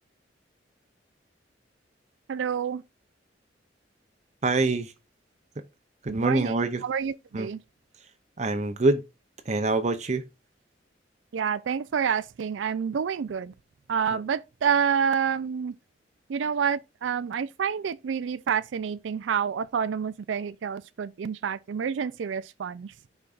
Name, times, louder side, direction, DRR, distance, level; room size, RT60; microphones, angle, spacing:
voice 1, 2.3-2.8 6.1-7.6 11.3-13.5 13.9-15.7 16.3-22.9, right 7 dB, 80° right, 0.4 m, -28 dB
voice 2, 4.4-4.9 6.0-6.8 7.3-7.5 8.4-9.0 9.5-10.2 14.1-14.2, right 2 dB, 40° right, 0.6 m, -25 dB
13.5 x 4.5 x 2.5 m
head